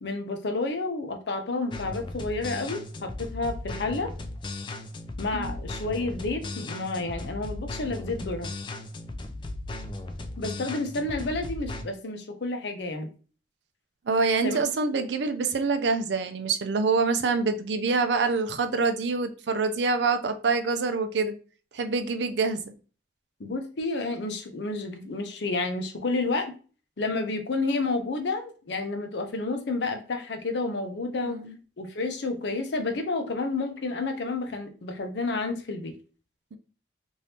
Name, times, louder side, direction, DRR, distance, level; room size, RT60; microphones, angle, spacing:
voice 1, 0.0-4.1 5.2-8.5 10.4-13.1 14.4-15.0 23.4-26.5 27.0-31.4 31.8-35.9, left 3 dB, 75° left, 0.6 m, -30 dB
sound 1, 1.7-11.8, left 2 dB, 25° left, 0.3 m, -37 dB
voice 2, 14.1-21.3 21.7-22.6 31.2-31.6 36.5-36.6, right 4 dB, 80° right, 0.5 m, -26 dB
2.7 x 2.7 x 3.3 m
head